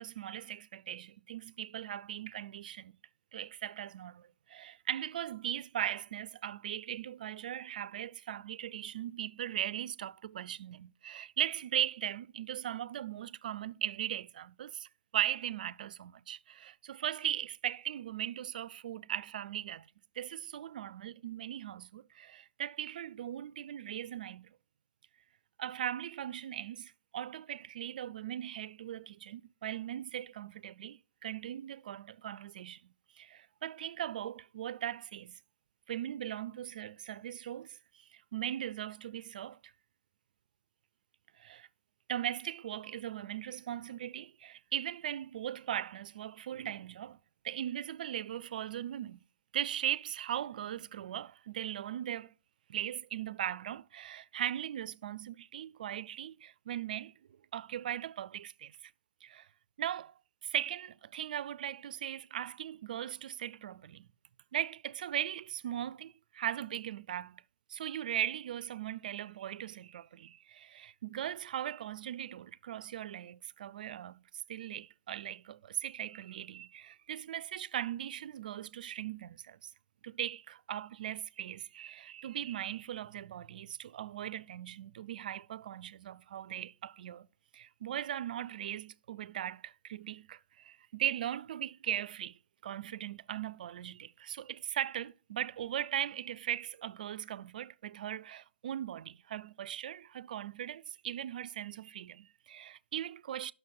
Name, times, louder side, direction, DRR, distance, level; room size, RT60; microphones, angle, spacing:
voice 1, 0.0-2.9 3.3-4.2 4.5-14.9 15.1-19.8 20.2-24.5 25.6-32.8 33.2-35.3 35.9-37.7 38.3-39.6 41.4-41.7 42.1-47.2 47.4-49.2 49.5-52.3 52.7-57.1 57.5-58.7 59.2-59.4 59.8-60.1 60.5-64.1 64.5-67.3 67.7-74.2 74.5-79.6 80.0-87.3 87.5-90.4 90.9-92.3 92.6-103.5, right 11 dB, 45° right, 0.4 m, -38 dB
11.0 x 6.4 x 4.7 m
hypercardioid pair, 145°, 6 cm